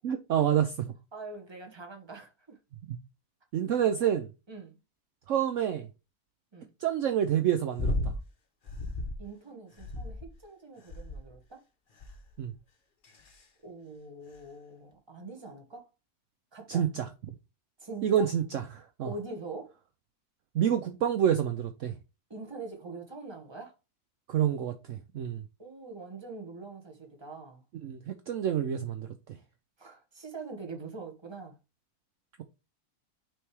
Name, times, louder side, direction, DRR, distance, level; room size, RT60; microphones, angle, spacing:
voice 1, 0.0-0.9 2.9-3.0 3.5-4.3 5.3-5.9 6.8-8.1 12.4-12.5 16.7-17.1 18.0-19.1 20.5-21.9 24.3-25.4 27.8-29.1, right 9 dB, 65° right, 0.9 m, -28 dB
voice 2, 1.1-2.6 4.5-4.8 6.5-6.7 9.2-11.6 13.6-15.9 16.5-16.8 17.8-18.3 19.0-19.7 22.3-23.7 25.6-27.6 29.8-31.6, right 3 dB, 20° right, 1.3 m, -43 dB
sound 1, 7.8-8.2 8.7-9.2 9.8-10.4 10.9-11.4 12.0-12.3 13.0-13.4 14.4-14.5, left 1 dB, 40° left, 0.9 m, -34 dB
6.1 x 3.4 x 4.7 m
omnidirectional pair, 1.6 m